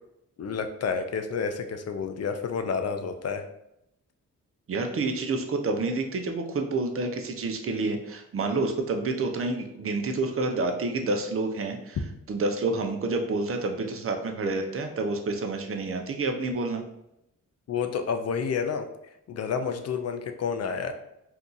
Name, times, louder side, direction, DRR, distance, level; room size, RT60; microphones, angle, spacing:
voice 1, 0.4-3.4 17.7-18.9 19.3-20.9, left 6 dB, 50° left, 6 dB, 0.5 m, -29 dB
voice 2, 4.7-12.0 12.3-16.8, right 3 dB, 45° right, 4 dB, 0.6 m, -28 dB
2.7 x 2.4 x 3.8 m, 0.81 s
cardioid pair, 80°, 32 cm